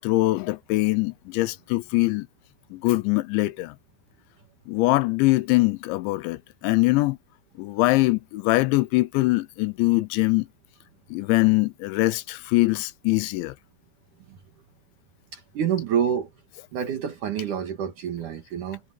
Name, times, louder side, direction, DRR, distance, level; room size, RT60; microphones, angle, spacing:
voice 1, 0.0-2.3 2.7-3.7 4.7-7.2 7.6-10.5 11.1-13.5, left 21 dB, 85° left, 3.0 m, -22 dB
voice 2, 15.3-16.3 16.7-18.8, right 8 dB, 60° right, 2.4 m, -28 dB
omnidirectional pair, 5.3 m